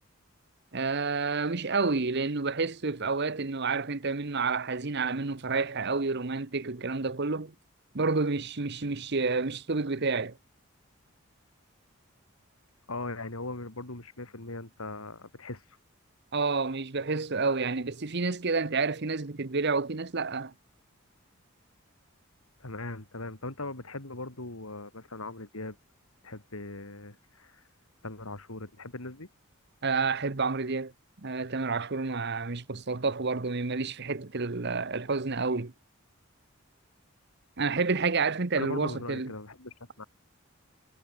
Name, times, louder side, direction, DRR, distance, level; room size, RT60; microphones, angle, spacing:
voice 1, 0.7-7.5 7.9-10.4 16.3-20.5 29.8-30.9 31.2-35.7 37.6-39.3, right 4 dB, 55° right, 1.0 m, -29 dB
voice 2, 12.9-15.6 22.6-25.8 26.2-27.6 28.0-29.3 38.6-40.0, left 2 dB, 90° left, 3.7 m, -39 dB
head